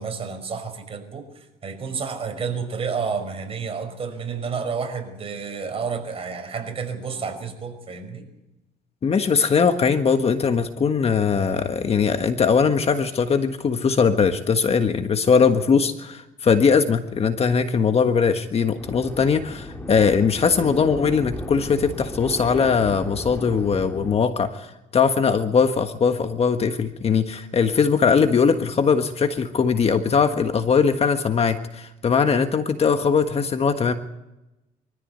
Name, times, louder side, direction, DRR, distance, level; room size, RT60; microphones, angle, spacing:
voice 1, 0.0-8.3, right 5 dB, 35° right, 5 dB, 5.5 m, -30 dB
voice 2, 9.0-24.7 24.9-33.9, left 6 dB, 35° left, 8 dB, 1.5 m, -20 dB
sound 1, 18.8-24.2, left 1 dB, 10° left, 3.3 m, -34 dB
24.0 x 14.5 x 8.1 m, 0.94 s
cardioid pair, 110°, 17 cm